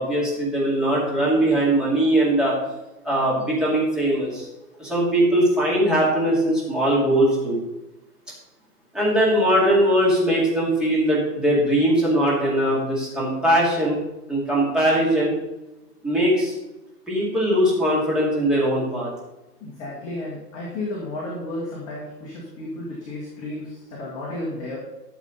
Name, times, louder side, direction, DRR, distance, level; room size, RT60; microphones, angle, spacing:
voice 1, 0.0-2.5 3.0-4.5 4.8-7.6 8.9-14.0 14.3-15.3 16.0-16.5 17.1-19.1, right 1 dB, ahead, -7 dB, 2.3 m, -20 dB
voice 2, 19.6-24.8, left 2 dB, 15° left, -4 dB, 1.7 m, -33 dB
13.0 x 7.3 x 4.0 m, 0.97 s
hypercardioid pair, 160°, 48 cm